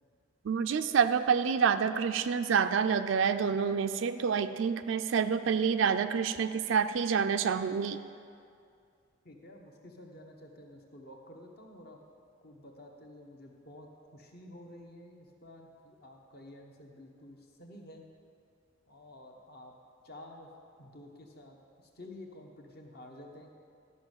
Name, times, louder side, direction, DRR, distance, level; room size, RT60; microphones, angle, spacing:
voice 1, 0.5-8.0, right 6 dB, 70° right, 9 dB, 0.4 m, -28 dB
voice 2, 9.2-12.0 12.4-18.0 18.9-19.7 20.0-20.5 20.8-21.6 22.0-23.5, left 1 dB, 50° left, 2 dB, 1.2 m, -51 dB
12.5 x 5.4 x 6.6 m, 2.4 s
head